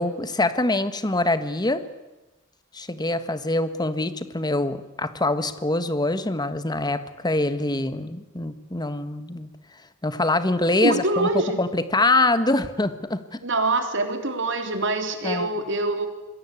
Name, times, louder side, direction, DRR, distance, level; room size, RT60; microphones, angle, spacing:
voice 1, 0.0-1.8 2.7-9.5 10.0-11.3 11.6-13.4 15.2-15.5, left 2 dB, 20° left, 11 dB, 1.5 m, -24 dB
voice 2, 10.8-11.6 13.4-16.1, right 2 dB, 65° right, 6 dB, 3.7 m, -24 dB
26.0 x 21.5 x 8.6 m, 1.1 s
head